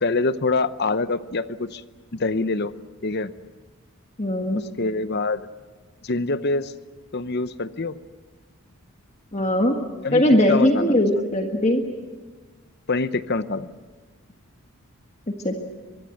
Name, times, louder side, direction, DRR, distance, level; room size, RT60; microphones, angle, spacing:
voice 1, 0.0-1.8 2.1-2.7 3.0-3.3 4.5-5.5 6.0-6.7 7.1-8.0 10.0-10.2 10.5-11.1 12.9-13.7, left 3 dB, 50° left, 13 dB, 0.8 m, -25 dB
voice 2, 4.2-4.6 9.3-9.7 10.1-11.8 15.4-15.6, left 1 dB, 30° left, 3 dB, 1.7 m, -19 dB
24.5 x 22.0 x 7.9 m, 1.4 s
head